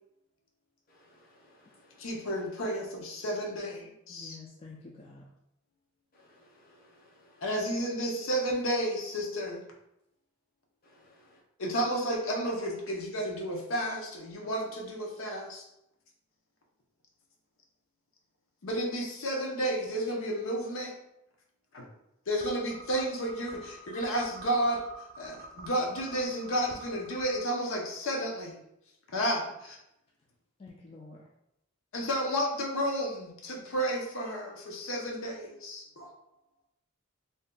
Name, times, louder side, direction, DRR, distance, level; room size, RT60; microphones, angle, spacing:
voice 1, 0.9-2.1 6.1-7.4 10.8-11.4, left 1 dB, 45° left, -3 dB, 0.7 m, -62 dB
voice 2, 2.0-4.4 7.4-9.6 11.6-15.7 18.6-20.9 21.7-21.9 22.3-24.8 25.2-28.6 29.1-29.8 31.9-36.1, equal, 80° left, 0 dB, 0.7 m, -32 dB
voice 3, 4.1-5.2 30.6-31.3, left 3 dB, 30° left, -2 dB, 0.3 m, -48 dB
sound 1, 22.4-27.4, right 2 dB, 45° right, 0.4 m, -47 dB
2.6 x 2.2 x 3.7 m, 0.83 s
head